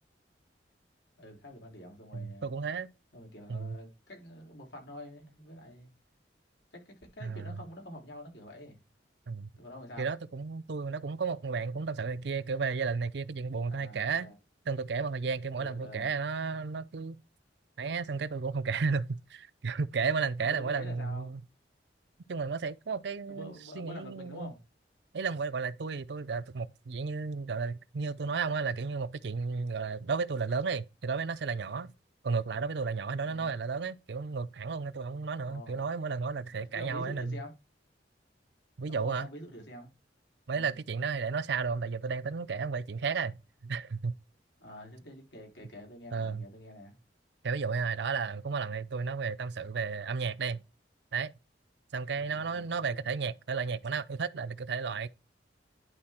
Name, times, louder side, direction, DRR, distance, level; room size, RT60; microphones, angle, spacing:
voice 1, 1.2-2.5 3.1-5.9 6.7-8.8 9.6-10.1 13.6-14.4 15.6-16.1 20.4-21.4 23.3-24.6 33.2-33.5 35.4-35.8 36.7-37.5 38.9-39.9 40.5-40.8 44.6-47.0 52.1-53.1, left 1 dB, 85° left, 3.8 m, -47 dB
voice 2, 2.1-2.9 3.5-3.8 7.2-7.5 9.3-9.5 10.0-14.3 14.7-17.2 17.8-21.4 22.3-24.5 25.1-31.9 32.2-37.4 38.8-39.3 40.5-43.4 43.6-44.1 46.1-46.5 47.4-50.6 51.1-51.3 51.9-55.1, right 5 dB, 65° right, 0.6 m, -33 dB
11.0 x 4.1 x 4.4 m
head